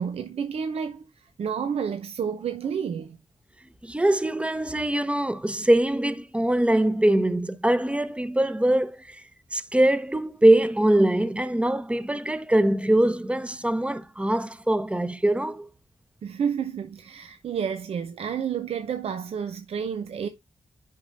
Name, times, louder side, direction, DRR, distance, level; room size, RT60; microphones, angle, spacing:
voice 1, 0.0-3.2 16.2-20.3, right 7 dB, 75° right, 0.6 m, -30 dB
voice 2, 3.8-9.2 9.5-15.7, right 1 dB, 10° right, 0.8 m, -23 dB
9.6 x 5.3 x 2.6 m
cardioid pair, 55°, 10 cm